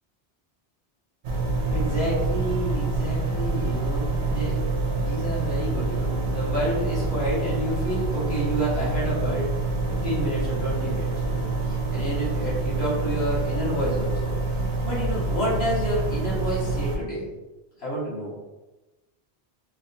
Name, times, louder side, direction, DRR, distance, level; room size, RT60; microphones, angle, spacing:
sound 1, 1.2-17.0, right 3 dB, 75° right, 0.9 m, -26 dB
voice 1, 1.7-9.5 10.0-14.3 14.8-17.2 17.8-18.3, equal, 70° left, -8 dB, 1.6 m, -29 dB
4.4 x 2.3 x 2.6 m, 1.1 s
omnidirectional pair, 1.1 m